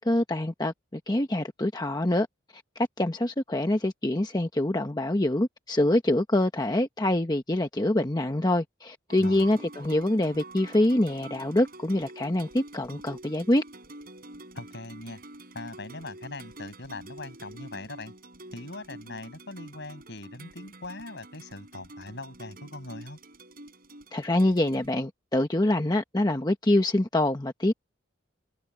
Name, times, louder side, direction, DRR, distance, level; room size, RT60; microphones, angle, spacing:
voice 1, 0.0-2.3 2.5-13.6 24.1-27.7, left 1 dB, 20° left, 1.0 m, -25 dB
sound 1, 9.1-24.9, right 2 dB, 45° right, 6.9 m, -47 dB
voice 2, 14.5-15.2 15.5-18.1 18.5-23.2, left 2 dB, 60° left, 7.8 m, -41 dB
head